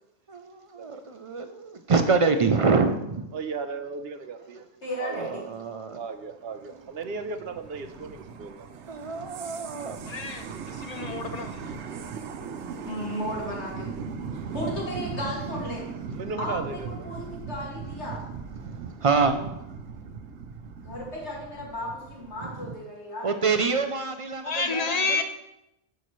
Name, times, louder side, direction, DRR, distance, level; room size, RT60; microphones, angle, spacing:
voice 1, 0.3-3.3 5.1-6.0 6.6-6.9 8.9-10.1 18.6-19.6 22.4-22.8 23.2-25.2, right 4 dB, 50° right, 0.4 m, -26 dB
voice 2, 3.3-4.4 5.0-5.4 6.0-8.6 16.2-16.6, right 4 dB, 65° right, 0.9 m, -35 dB
voice 3, 4.8-5.5 9.7-9.8 12.8-14.0 14.5-15.9 16.4-18.3 20.8-23.3, left 1 dB, 85° left, 2.5 m, -35 dB
sound 1, 6.2-22.7, right 6 dB, 90° right, 0.9 m, -38 dB
voice 4, 10.0-11.8 24.4-25.2, left 4 dB, 45° left, 0.6 m, -30 dB
10.5 x 5.8 x 3.1 m
omnidirectional pair, 1.1 m